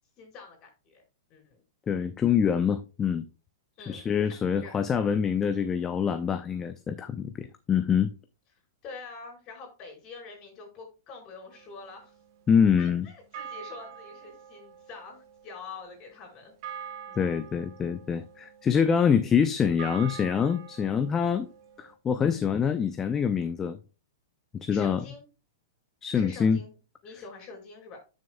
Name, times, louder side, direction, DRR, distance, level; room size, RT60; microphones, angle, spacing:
voice 1, 0.2-1.0 1.3-1.6 3.8-4.7 8.8-12.1 12.8-16.5 17.1-17.2 24.7-25.2 26.1-26.7 27.0-28.0, left 4 dB, 35° left, 5.0 m, -45 dB
voice 2, 1.9-3.3 3.9-8.1 12.5-13.1 17.2-21.5 21.8-23.8 24.6-25.0 26.0-26.6, left 7 dB, 20° left, 0.5 m, -25 dB
sound 1, 11.5-12.8 13.3-21.9, right 8 dB, 50° right, 1.6 m, -45 dB
10.5 x 6.4 x 2.3 m
hypercardioid pair, 130°, 2 cm